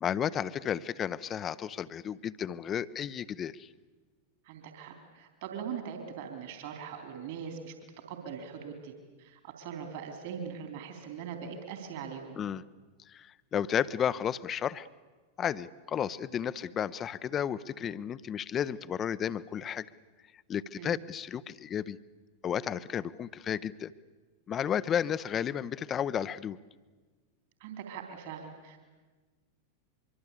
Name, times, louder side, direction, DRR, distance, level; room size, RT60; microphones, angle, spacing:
voice 1, 0.0-3.7 12.4-12.6 13.1-14.9 15.4-19.9 20.5-22.0 22.4-23.9 24.5-26.6, left 9 dB, 25° left, 17 dB, 0.8 m, -33 dB
voice 2, 4.4-7.7 8.1-8.9 9.2-12.4 20.8-21.0 27.6-28.8, right 7 dB, 50° right, 5 dB, 3.7 m, -41 dB
24.5 x 24.0 x 8.5 m, 1.3 s
figure-of-eight pair, 90°, 0 cm